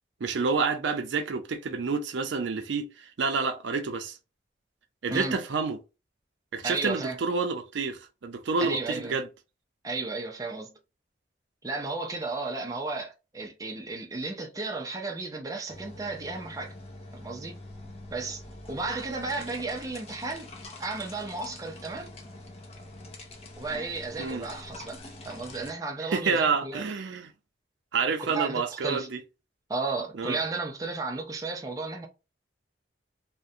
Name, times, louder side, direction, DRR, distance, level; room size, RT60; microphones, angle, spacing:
voice 1, 0.2-4.2 5.0-5.8 6.5-9.3 24.2-24.5 26.1-27.3 27.9-29.2 30.2-30.4, right 4 dB, 85° right, 0.5 m, -28 dB
voice 2, 6.6-7.2 8.6-9.2 9.8-10.7 11.6-16.7 17.1-17.6 18.1-18.4 18.7-20.5 20.8-22.1 23.6-26.8 28.3-29.1 29.7-32.1, right 3 dB, 20° right, 0.4 m, -34 dB
sound 1, 15.7-25.7, left 2 dB, 35° left, 0.5 m, -45 dB
2.4 x 2.1 x 2.6 m
head